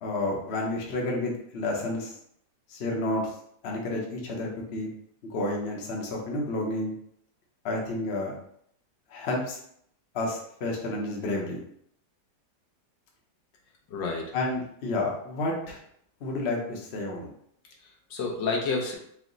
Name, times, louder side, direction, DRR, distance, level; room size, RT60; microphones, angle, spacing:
voice 1, 0.0-2.1 2.7-3.3 3.6-4.9 5.3-6.9 7.6-8.3 9.1-9.6 10.1-11.6 14.3-15.8 16.2-17.3, left 2 dB, 45° left, -1 dB, 0.9 m, -30 dB
voice 2, 13.9-14.3 17.8-18.9, left 4 dB, 85° left, 0 dB, 1.5 m, -30 dB
4.7 x 2.1 x 3.8 m, 0.69 s
omnidirectional pair, 1.9 m